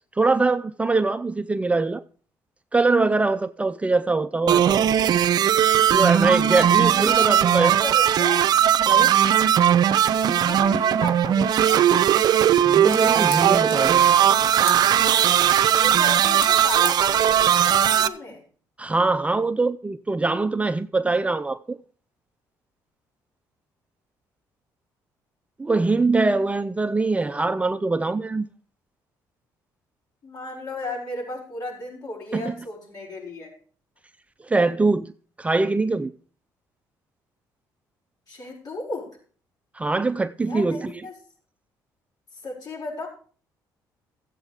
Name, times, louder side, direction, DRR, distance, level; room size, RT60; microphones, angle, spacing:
voice 1, 0.2-2.0 2.7-4.8 5.9-7.8 8.9-9.2 12.7-14.0 18.8-21.8 25.6-28.5 32.3-32.5 34.4-35.1 35.4-36.1 39.8-40.9, right 3 dB, 15° right, 0.5 m, -23 dB
sound 1, 4.5-18.1, right 10 dB, 60° right, 0.6 m, -18 dB
voice 2, 6.7-8.4 10.3-11.9 15.6-18.4 30.2-33.5 38.3-39.1 40.5-41.1 42.4-43.1, left 2 dB, 55° left, 6.2 m, -35 dB
sound 2, 12.6-17.8, left 4 dB, 35° left, 4.5 m, -38 dB
14.0 x 8.2 x 5.0 m
cardioid pair, 90°, 8 cm